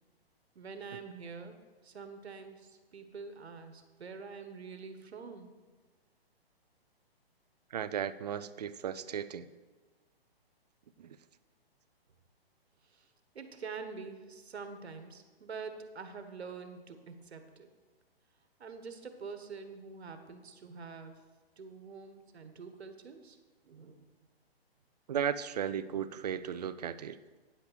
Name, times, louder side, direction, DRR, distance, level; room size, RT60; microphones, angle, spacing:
voice 1, 0.5-1.6 1.8-5.5 12.9-13.1 13.3-17.7 18.6-21.2 21.6-23.4 23.6-24.1, right 5 dB, 90° right, 8 dB, 1.3 m, -46 dB
voice 2, 7.7-9.5 11.0-11.2 25.1-27.2, right 8 dB, 40° right, 14 dB, 0.4 m, -35 dB
9.5 x 5.7 x 6.7 m, 1.3 s
hypercardioid pair, 155°, 31 cm